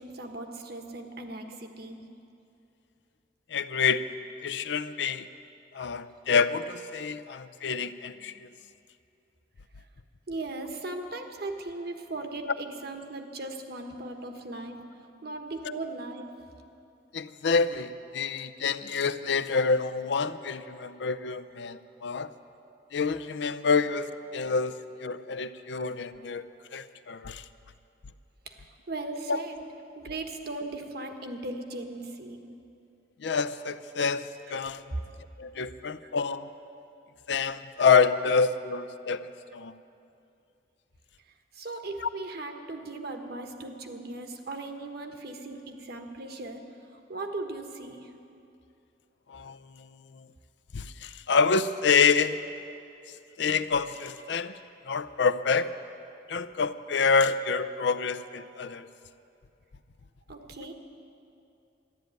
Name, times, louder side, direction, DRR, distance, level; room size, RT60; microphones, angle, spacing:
voice 1, 0.0-2.0 8.3-8.4 9.8-9.9 10.3-14.9 15.2-16.3 28.4-29.6 29.9-32.5 34.9-35.0 36.0-36.1 41.5-46.6 46.9-48.1 60.3-60.7, right 2 dB, 55° right, 5 dB, 1.3 m, -38 dB
voice 2, 3.5-4.0 4.4-5.3 5.7-8.5 17.1-22.3 22.9-26.4 26.7-27.4 29.3-29.4 33.2-34.8 35.4-36.5 37.3-39.7 49.3-49.9 50.1-50.3 50.7-52.4 53.4-54.5 54.9-55.7 56.3-58.9, left 5 dB, 70° left, 13 dB, 0.5 m, -27 dB
13.0 x 11.5 x 9.3 m, 2.7 s
head